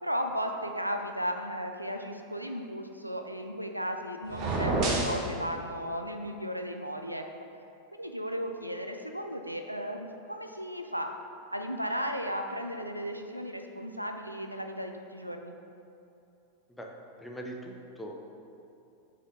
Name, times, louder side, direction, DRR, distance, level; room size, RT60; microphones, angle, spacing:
voice 1, 0.0-7.2 7.9-11.1 11.5-15.5, equal, 90° right, 5 dB, 0.4 m, -35 dB
sound 1, 4.3-5.2, right 2 dB, 40° right, 0.9 m, -28 dB
voice 2, 17.2-18.3, right 1 dB, 5° left, 0 dB, 0.7 m, -41 dB
5.0 x 4.3 x 5.3 m, 2.7 s
figure-of-eight pair, 90°, 0 cm